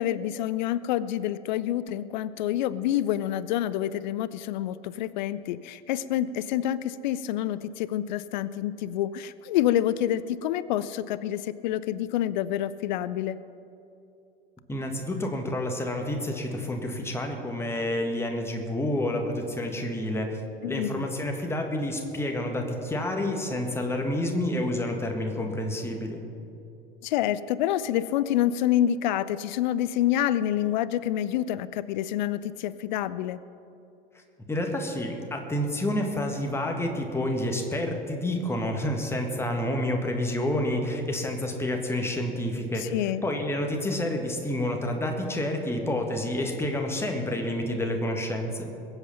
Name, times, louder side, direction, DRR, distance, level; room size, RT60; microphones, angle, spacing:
voice 1, 0.0-13.4 20.6-21.1 27.0-33.4 42.8-43.2, left 12 dB, 50° left, 16 dB, 0.5 m, -27 dB
voice 2, 14.7-20.4 20.7-26.2 34.5-42.9 43.2-48.7, left 1 dB, 10° left, 2 dB, 1.8 m, -29 dB
21.5 x 8.0 x 5.6 m, 2.8 s
figure-of-eight pair, 80°, 29 cm